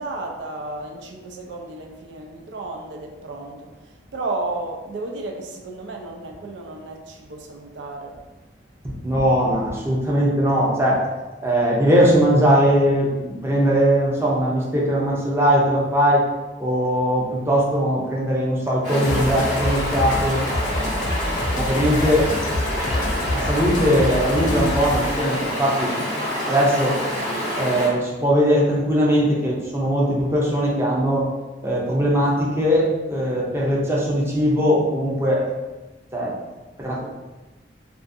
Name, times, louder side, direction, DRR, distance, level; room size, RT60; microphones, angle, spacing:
voice 1, 0.0-8.3 8.8-8.9, right 2 dB, 80° right, 2 dB, 0.4 m, -33 dB
voice 2, 9.0-11.0 11.4-16.2 16.6-20.4 20.9-21.1 21.5-22.3 23.3-25.9 26.5-27.0 27.6-31.3 31.6-35.5 36.1-36.3 36.8-37.0, equal, 15° right, -5 dB, 0.5 m, -20 dB
Stream, 18.8-27.9, equal, 45° right, 1.1 m, -27 dB
sound 1, 19.0-25.3, left 1 dB, 45° left, 0.3 m, -27 dB
2.4 x 2.4 x 2.6 m, 1.1 s
head